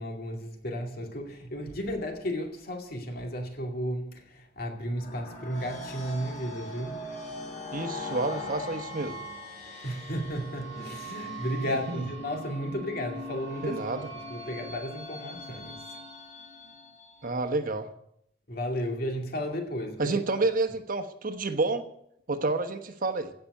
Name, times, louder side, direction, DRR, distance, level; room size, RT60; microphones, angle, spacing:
voice 1, 0.0-7.0 9.8-16.0 18.5-20.2, equal, 55° left, 2.4 m, -34 dB
sound 1, 4.8-17.4, left 1 dB, 40° left, 3.9 m, -41 dB
voice 2, 7.7-9.2 11.7-12.0 13.6-14.1 17.2-17.9 20.0-21.8 22.3-23.3, right 3 dB, 50° right, 1.1 m, -29 dB
16.0 x 6.0 x 9.2 m
head